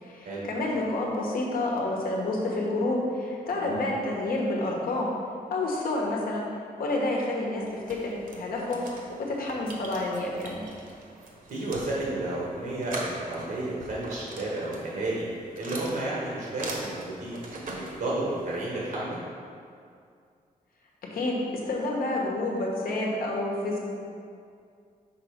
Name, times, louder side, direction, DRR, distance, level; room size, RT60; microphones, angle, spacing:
voice 1, 0.0-5.1 5.5-6.4 6.8-8.8 9.3-10.6 21.1-23.8, left 2 dB, 90° left, -2 dB, 1.1 m, -29 dB
sound 1, 7.6-18.6, right 2 dB, 65° right, 1.0 m, -42 dB
voice 2, 11.5-15.3 15.6-17.4 17.7-19.2, right 2 dB, 85° right, -6 dB, 1.3 m, -32 dB
5.4 x 4.1 x 5.1 m, 2.3 s
wide cardioid pair, 135°, 15 cm